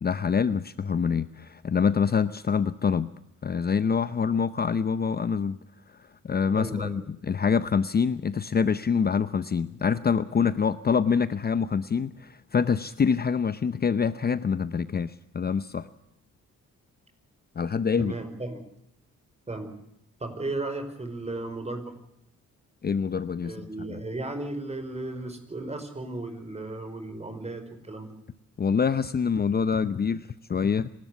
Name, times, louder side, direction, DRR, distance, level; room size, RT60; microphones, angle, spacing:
voice 1, 0.0-3.1 3.4-5.6 5.9-15.9 17.6-18.1 22.8-23.7 28.6-30.9, left 6 dB, 30° left, 14 dB, 0.8 m, -26 dB
voice 2, 6.5-7.0 18.0-18.6 19.5-19.7 20.2-21.9 23.4-28.1, right 2 dB, 20° right, 8 dB, 5.3 m, -35 dB
26.5 x 13.0 x 8.2 m, 0.79 s
cardioid pair, 90°, 30 cm